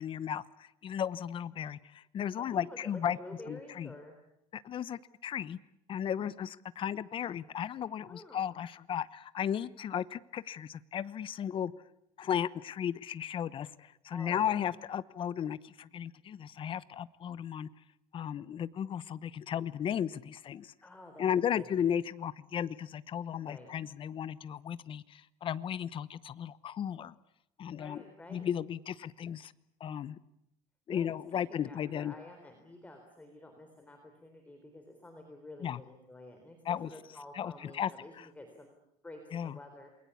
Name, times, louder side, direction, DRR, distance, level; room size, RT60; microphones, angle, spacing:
voice 1, 0.0-3.2 3.5-3.9 4.5-5.6 5.9-11.7 12.2-17.7 18.1-20.7 21.2-27.1 27.6-28.0 28.3-29.5 29.8-30.2 30.9-32.1 35.6-35.8 36.6-36.9 37.3-37.9 38.2-38.3 39.3-39.6, left 9 dB, 40° left, 17 dB, 1.0 m, -35 dB
voice 2, 2.4-4.2 8.1-8.5 14.1-14.7 20.8-21.7 23.4-23.7 27.7-28.5 30.9-39.9, left 1 dB, 10° left, 4 dB, 3.9 m, -50 dB
28.5 x 21.5 x 8.5 m, 0.82 s
cardioid pair, 135°, 13 cm